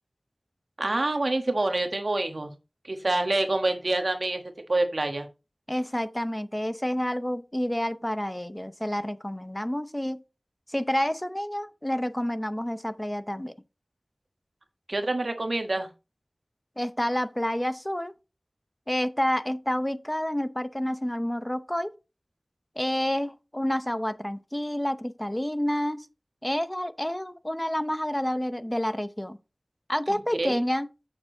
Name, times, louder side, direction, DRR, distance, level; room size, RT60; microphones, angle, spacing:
voice 1, 0.8-2.5 2.9-4.4 4.7-5.3 14.9-15.9 30.1-30.6, right 2 dB, 70° right, 1.3 m, -27 dB
voice 2, 5.7-10.2 10.7-13.5 16.8-18.1 18.9-21.9 22.8-26.1 26.4-29.4 29.9-30.9, equal, 15° left, 0.6 m, -29 dB
7.1 x 6.7 x 3.8 m
wide cardioid pair, 50°, 0 cm